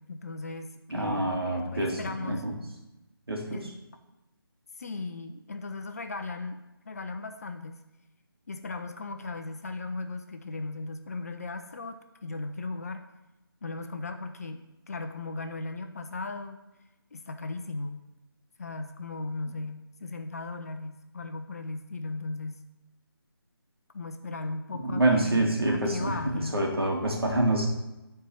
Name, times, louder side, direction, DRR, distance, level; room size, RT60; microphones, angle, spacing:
voice 1, 0.0-2.5 3.5-3.7 4.8-7.8 8.5-13.1 13.6-16.6 17.1-18.0 18.6-22.6 23.9-26.6, left 3 dB, 40° left, 6 dB, 0.8 m, -37 dB
voice 2, 0.9-2.6 3.3-3.6 24.8-27.7, right 1 dB, 75° right, 0 dB, 2.5 m, -27 dB
11.0 x 4.7 x 6.3 m, 0.99 s
figure-of-eight pair, 160°, 13 cm